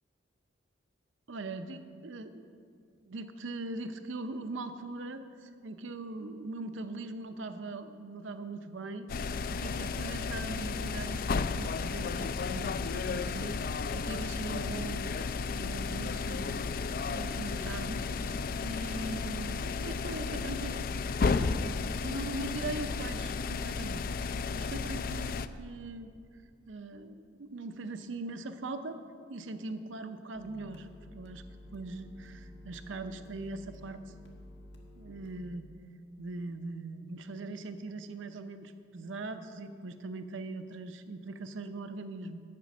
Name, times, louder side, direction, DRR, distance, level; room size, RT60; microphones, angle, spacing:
voice 1, 1.3-2.5 3.0-9.1 9.5-15.2 15.6-16.7 17.0-18.4 18.6-20.8 21.3-24.1 24.5-26.1 26.7-29.0 29.3-30.9 31.1-31.4 31.7-34.1 34.9-35.7 36.2-42.4, right 2 dB, 80° right, 9 dB, 0.6 m, -41 dB
sound 1, 9.1-25.5, left 4 dB, 45° left, 0.3 m, -33 dB
sound 2, 30.3-35.3, left 1 dB, 70° left, 1.7 m, -51 dB
12.0 x 8.4 x 6.0 m, 2.3 s
head